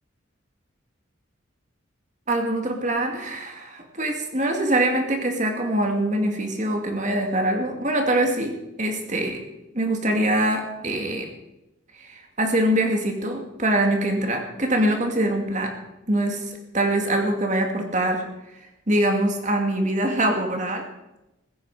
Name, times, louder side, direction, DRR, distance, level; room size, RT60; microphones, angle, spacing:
voice 1, 2.3-9.4 9.7-11.3 12.0-15.7 16.1-18.2 18.9-20.8, right 1 dB, 35° right, 3 dB, 2.3 m, -24 dB
15.5 x 15.5 x 5.0 m, 0.95 s
head